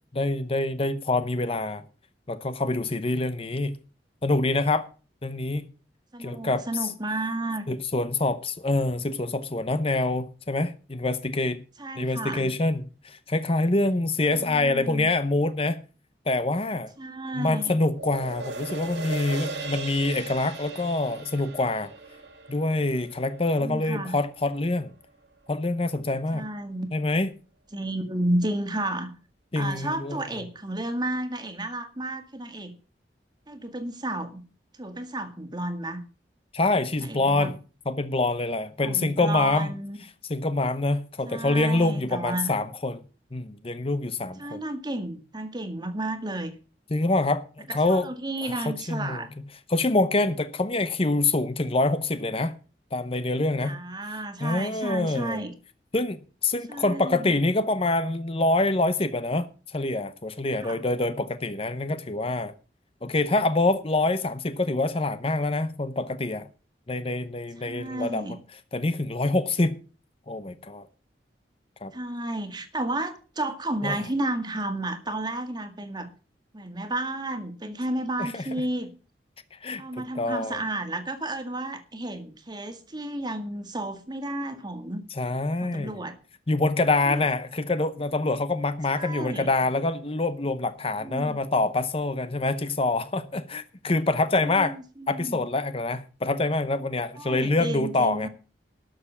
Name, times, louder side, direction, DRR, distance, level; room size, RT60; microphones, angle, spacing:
voice 1, 0.1-1.8 2.3-3.8 4.2-4.9 5.2-5.7 6.2-6.9 7.7-11.6 12.0-15.8 16.3-16.9 17.3-21.9 22.5-24.9 25.5-26.5 26.9-27.3 29.5-30.2 36.5-37.5 37.9-39.7 40.3-43.0 43.3-44.6 46.9-48.1 48.4-49.3 49.7-52.5 52.9-53.8 54.4-55.4 55.9-62.5 63.0-66.5 66.9-68.2 68.7-69.8 70.3-70.9 71.8-71.9 73.8-74.0 78.2-78.4 79.5-80.6 85.2-86.0 86.5-94.8 95.1-98.3, left 2 dB, 35° left, 0.8 m, -26 dB
voice 2, 6.1-7.7 11.8-12.6 14.3-15.1 17.0-17.7 23.6-24.2 26.3-26.9 27.7-29.1 29.6-32.7 33.5-34.4 34.8-36.0 37.0-37.5 38.8-40.0 41.3-42.5 44.4-46.5 47.7-49.3 53.6-55.5 56.7-57.4 60.6-60.8 67.6-68.4 71.9-76.1 76.5-78.9 79.8-85.0 85.6-86.2 87.1-87.2 88.9-89.5 91.0-91.4 94.4-95.4 97.2-98.3, right 1 dB, 25° right, 1.8 m, -32 dB
sound 1, 17.9-24.5 24.9-25.0, right 3 dB, 85° right, 2.3 m, -38 dB
12.5 x 6.7 x 7.2 m
head